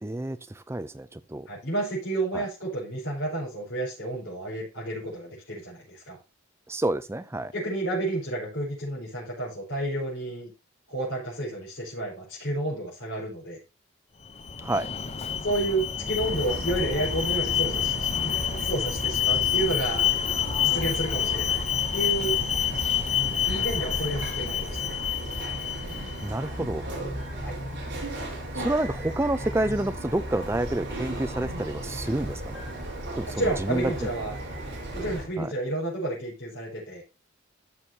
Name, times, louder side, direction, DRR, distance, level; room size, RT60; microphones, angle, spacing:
voice 1, 0.0-1.5 2.3-2.4 6.7-7.5 14.6-14.9 26.2-26.8 28.5-32.6 33.2-34.1 35.4-35.5, right 1 dB, 15° right, 0.5 m, -29 dB
voice 2, 1.5-6.2 7.5-10.5 10.9-13.6 15.4-20.1 20.6-22.4 23.4-24.9 27.4-27.6 33.3-34.3 34.9-37.0, right 1 dB, 70° left, 4.9 m, -31 dB
Alarm, 14.2-26.3, left 9 dB, 30° left, 0.7 m, -28 dB
Bird vocalization bird call bird song, 16.2-35.3, right 1 dB, 55° right, 4.4 m, -35 dB
14.0 x 6.4 x 2.8 m
head